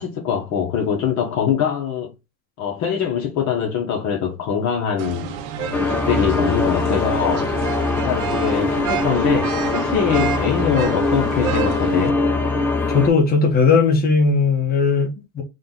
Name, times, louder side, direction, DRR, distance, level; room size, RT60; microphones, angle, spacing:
voice 1, 0.0-2.1 2.6-5.3 5.6-7.5 7.9-12.2, left 7 dB, 45° left, 1.0 m, -23 dB
sound 1, 5.0-12.1, right 9 dB, 60° right, 0.7 m, -30 dB
sound 2, 5.7-13.1, left 3 dB, 5° left, 0.4 m, -22 dB
voice 2, 12.9-15.4, left 4 dB, 20° left, 1.2 m, -17 dB
3.8 x 2.4 x 3.8 m
supercardioid pair, 130°, 40 cm